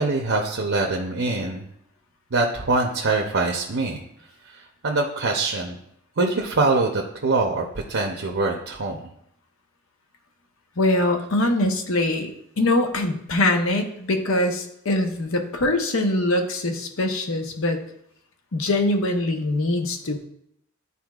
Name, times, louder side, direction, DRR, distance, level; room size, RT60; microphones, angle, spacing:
voice 1, 0.0-1.7 2.3-4.0 4.5-5.8 6.2-9.0, right 3 dB, 60° right, 1 dB, 0.7 m, -24 dB
voice 2, 10.8-17.8 18.5-20.3, left 1 dB, 70° left, 5 dB, 0.9 m, -23 dB
11.0 x 4.2 x 2.4 m, 0.73 s
head